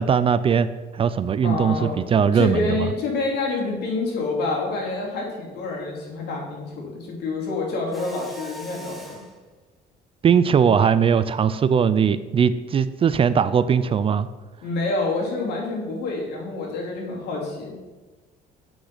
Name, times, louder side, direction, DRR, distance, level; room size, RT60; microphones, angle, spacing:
voice 1, 0.0-2.9 10.2-14.3, right 7 dB, 35° right, 14 dB, 0.4 m, -20 dB
voice 2, 1.4-2.0 2.3-9.2 14.6-17.8, left 3 dB, 75° left, -2 dB, 2.8 m, -27 dB
Mechanisms, 7.9-9.4, equal, ahead, 1.3 m, -41 dB
8.0 x 6.1 x 5.1 m, 1.2 s
cardioid pair, 110°, 17 cm